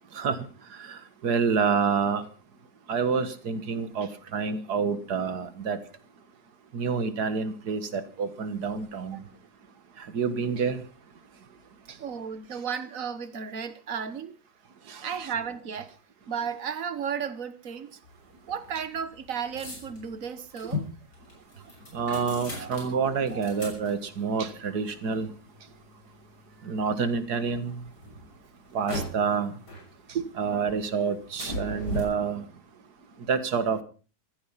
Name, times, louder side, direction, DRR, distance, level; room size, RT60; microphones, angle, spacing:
voice 1, 0.1-0.5 0.8-2.2 2.9-5.8 6.7-9.2 10.0-10.8 14.9-15.1 21.9-25.3 26.6-27.8 28.7-29.5 30.1-32.4 33.3-33.8, right 5 dB, 70° right, 2.1 m, -28 dB
voice 2, 12.0-14.3 15.0-15.9 16.3-18.0 18.5-20.9 26.6-26.7, right 7 dB, 55° right, 1.6 m, -34 dB
sound 1, 18.0-27.2 27.8-29.4 29.7-30.5 30.8-32.0, left 2 dB, 85° left, 6.7 m, -39 dB
15.0 x 14.5 x 5.7 m
omnidirectional pair, 1.7 m